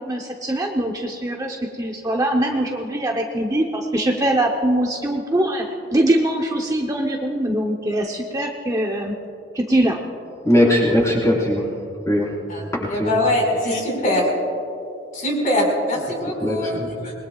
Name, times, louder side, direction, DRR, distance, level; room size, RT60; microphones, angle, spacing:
voice 1, 0.0-5.7 5.9-9.1 9.5-10.0, right 1 dB, 20° right, 1 dB, 0.9 m, -22 dB
voice 2, 10.4-11.7 12.1-12.3 12.8-13.1 16.4-16.9, left 1 dB, 15° left, -5 dB, 4.7 m, -19 dB
voice 3, 12.5-14.3 15.1-16.8 17.0-17.1, left 1 dB, 45° left, -2 dB, 5.2 m, -22 dB
27.0 x 21.5 x 2.4 m, 2.6 s
head